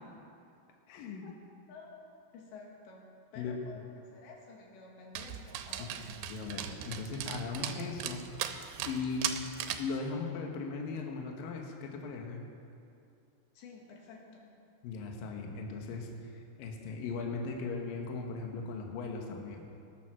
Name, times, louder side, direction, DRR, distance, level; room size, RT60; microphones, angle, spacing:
voice 1, 0.9-1.2 3.4-3.5 6.3-9.5 9.8-12.4 14.8-19.7, left 4 dB, 65° left, 1 dB, 2.7 m, -38 dB
voice 2, 1.7-6.0 13.6-14.5, left 3 dB, 80° left, -1 dB, 4.0 m, -51 dB
Dog, 5.2-10.0, right 10 dB, 90° right, 3.0 m, -38 dB
20.0 x 9.3 x 6.2 m, 2.5 s
omnidirectional pair, 5.1 m